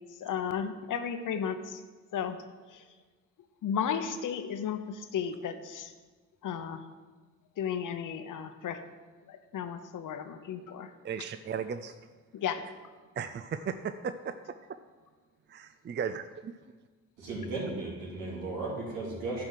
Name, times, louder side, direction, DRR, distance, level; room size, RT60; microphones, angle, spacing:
voice 1, 0.2-1.8 2.1-2.4 2.7-2.8 3.6-5.9 6.4-6.9 7.6-8.8 9.3-10.9 12.3-12.6, left 7 dB, 65° left, 9 dB, 0.9 m, -34 dB
voice 2, 11.0-11.9 13.2-14.3 15.5-16.5, right 7 dB, 35° right, 10 dB, 0.4 m, -36 dB
voice 3, 17.2-19.4, right 2 dB, 90° right, -5 dB, 3.2 m, -35 dB
10.5 x 4.9 x 5.7 m, 1.4 s
cardioid pair, 75°, 34 cm